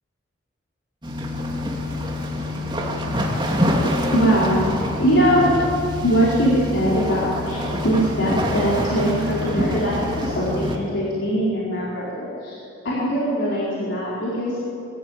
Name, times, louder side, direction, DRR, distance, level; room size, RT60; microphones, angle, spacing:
sound 1, 1.0-10.8, left 1 dB, 25° right, 2.6 m, -25 dB
voice 1, 4.1-4.7 5.0-5.5 6.0-12.6 12.8-14.6, equal, 65° left, -7 dB, 4.5 m, -21 dB
23.5 x 14.0 x 9.0 m, 2.7 s
head